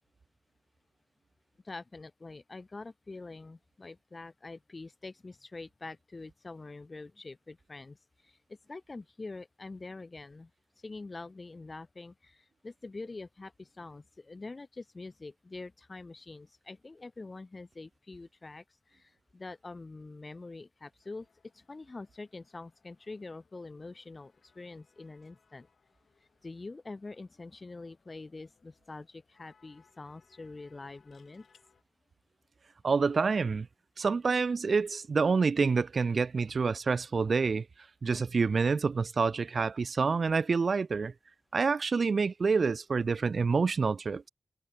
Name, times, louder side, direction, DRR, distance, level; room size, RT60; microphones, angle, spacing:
voice 1, 1.6-8.0 8.2-8.4 8.7-10.5 10.8-18.6 18.9-21.3 21.5-25.7 26.4-31.5, left 3 dB, 40° left, 0.4 m, -45 dB
sound 1, 21.0-31.8, left 5 dB, 70° left, 6.0 m, -69 dB
sound 2, 28.0-28.2 28.6-28.7 30.8-31.7 33.5-33.7, left 6 dB, 90° left, 6.0 m, -68 dB
voice 2, 32.8-33.7 34.0-37.7 38.0-41.1 41.5-44.3, right 4 dB, 60° right, 0.3 m, -27 dB
cardioid pair, 70°, 0 cm